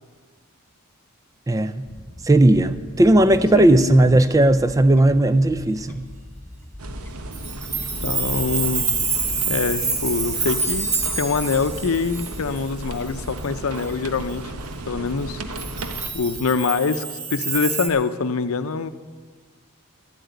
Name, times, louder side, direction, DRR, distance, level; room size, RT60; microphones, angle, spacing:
voice 1, 1.5-1.9 2.2-6.0, right 1 dB, 15° right, 0.3 m, -16 dB
Fowl / Bird, 1.9-16.5, left 1 dB, 10° left, 1.1 m, -41 dB
voice 2, 3.5-4.0 8.0-8.9 9.5-14.4 14.9-15.4 16.1-18.9, left 4 dB, 75° left, 0.6 m, -24 dB
sound 1, 6.8-16.1, right 2 dB, 85° right, 1.0 m, -35 dB
Chime, 7.3-13.4 13.8-13.9 15.6-17.9, right 4 dB, 30° right, 1.4 m, -27 dB
11.5 x 7.9 x 9.4 m
head